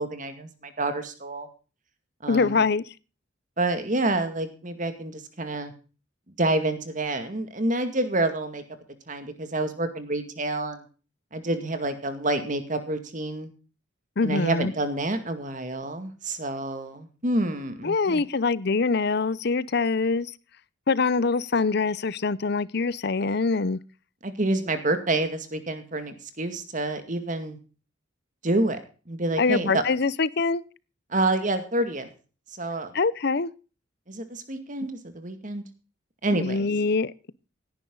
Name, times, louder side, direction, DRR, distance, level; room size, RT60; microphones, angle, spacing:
voice 1, 0.0-1.5 2.2-2.6 3.6-5.7 6.4-8.6 9.1-10.8 11.3-13.5 14.2-18.2 24.2-27.6 28.4-28.8 29.1-29.8 31.1-32.1 32.5-32.9 34.1-35.6 36.2-36.7, right 2 dB, 40° right, 2.2 m, -28 dB
voice 2, 2.3-2.8 14.2-14.7 17.8-20.3 20.9-23.8 29.4-30.6 32.9-33.5 36.3-37.3, left 4 dB, 55° left, 0.7 m, -24 dB
17.0 x 10.5 x 3.9 m
head